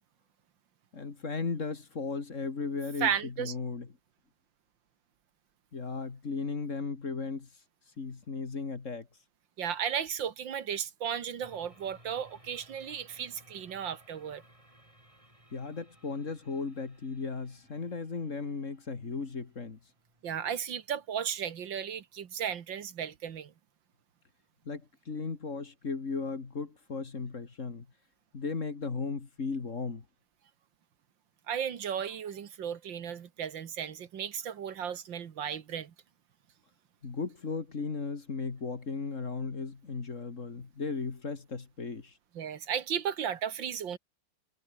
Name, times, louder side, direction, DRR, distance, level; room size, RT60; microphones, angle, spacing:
voice 1, 0.9-3.9 5.7-7.5 8.0-9.1 15.5-19.8 24.7-27.9 28.3-30.0 37.0-42.1, left 4 dB, 40° left, 2.4 m, -36 dB
voice 2, 3.0-3.5 9.6-14.4 20.2-23.5 31.5-35.9 42.3-44.0, right 8 dB, 75° right, 2.2 m, -35 dB
sound 1, 11.4-22.5, right 1 dB, 15° right, 7.3 m, -61 dB
omnidirectional pair, 2.0 m